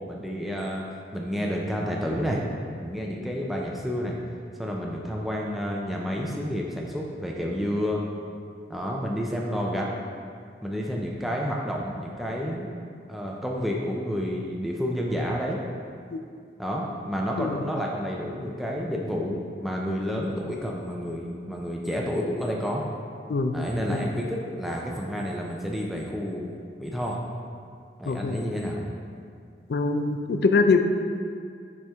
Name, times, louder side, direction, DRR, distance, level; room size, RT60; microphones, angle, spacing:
voice 1, 0.1-0.8 1.1-2.4 2.8-4.2 4.6-8.0 8.7-9.9 10.6-12.7 13.1-15.6 16.6-22.9 23.5-26.5 26.8-27.2 28.0-28.8, equal, ahead, -2 dB, 0.4 m, -30 dB
voice 2, 28.1-28.4 29.7-30.9, left 4 dB, 65° left, 7 dB, 0.4 m, -23 dB
6.1 x 4.3 x 3.5 m, 2.2 s
head